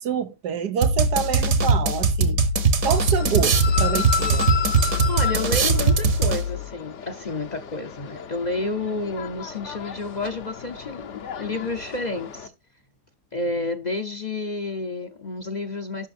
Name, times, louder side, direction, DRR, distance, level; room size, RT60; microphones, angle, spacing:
voice 1, 0.0-2.4 2.8-4.5, right 7 dB, 85° right, 1.6 m, -27 dB
sound 1, 0.8-6.7, right 3 dB, 60° right, 1.7 m, -20 dB
sound 2, 2.9-12.5, left 7 dB, 55° left, 1.1 m, -33 dB
voice 2, 5.1-12.5 13.3-16.1, left 3 dB, 35° left, 0.7 m, -30 dB
12.0 x 5.9 x 4.2 m
omnidirectional pair, 1.7 m